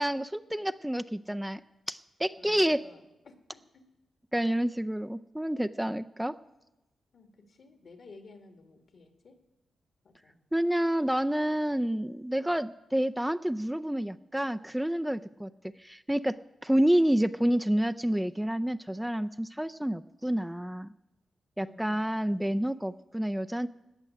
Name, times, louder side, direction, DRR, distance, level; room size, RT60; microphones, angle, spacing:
voice 1, 0.0-1.6 1.9-2.8 4.3-6.4 10.5-16.4 16.6-20.9 21.6-23.7, right 1 dB, 5° right, 9 dB, 0.4 m, -29 dB
voice 2, 2.4-3.9 7.1-9.4 10.0-10.4 11.4-11.5 21.6-22.1, left 3 dB, 65° left, 5 dB, 2.1 m, -54 dB
17.0 x 6.2 x 9.9 m, 0.97 s
cardioid pair, 70°, 0 cm